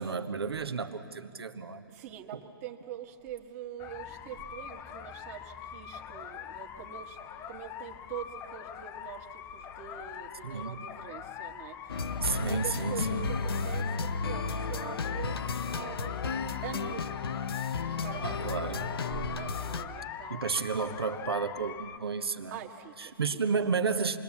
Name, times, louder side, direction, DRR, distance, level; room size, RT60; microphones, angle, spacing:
voice 1, 0.0-1.9 2.3-2.4 10.4-10.9 12.2-13.3 18.2-18.9 20.3-22.6 23.0-24.2, right 5 dB, 85° right, 8 dB, 1.4 m, -32 dB
voice 2, 1.9-7.2 7.5-16.2 16.6-17.2 17.8-20.4 22.5-23.4, right 10 dB, 40° right, 4 dB, 1.6 m, -44 dB
sound 1, 3.8-22.0, left 9 dB, 20° left, 0.6 m, -42 dB
sound 2, 11.9-19.8, left 4 dB, 80° left, 1.0 m, -33 dB
28.0 x 21.0 x 7.2 m, 2.4 s
hypercardioid pair, 140°, 13 cm